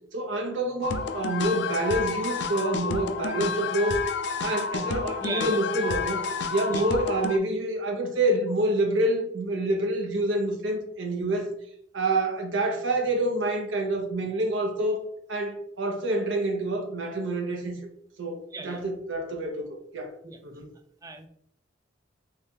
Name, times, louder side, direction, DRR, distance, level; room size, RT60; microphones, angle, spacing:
voice 1, 0.1-4.0 4.4-6.2 6.5-11.5 11.9-15.0 15.3-17.8 18.2-20.1 20.4-20.7, right 1 dB, 85° right, 3 dB, 0.8 m, -27 dB
sound 1, 0.8-7.4, left 5 dB, 60° left, 0.4 m, -30 dB
voice 2, 5.2-5.6 6.7-6.8 18.5-18.8 20.2-20.4 21.0-21.3, right 3 dB, 20° right, 6 dB, 0.3 m, -36 dB
3.5 x 3.2 x 2.8 m, 0.68 s
head